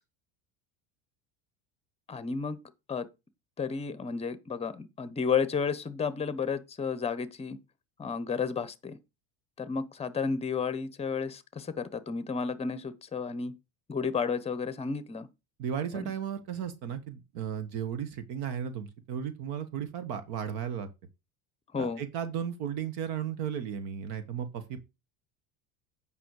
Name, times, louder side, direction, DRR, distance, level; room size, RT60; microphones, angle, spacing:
voice 1, 2.1-2.6 2.9-3.1 3.6-7.6 8.0-9.0 9.6-13.5 13.9-15.3 15.9-16.0 21.7-22.0, left 5 dB, 15° left, 0.9 m, -32 dB
voice 2, 15.6-20.9 21.8-24.8, right 8 dB, 60° right, 1.6 m, -35 dB
9.1 x 5.5 x 4.9 m
cardioid pair, 150°, 41 cm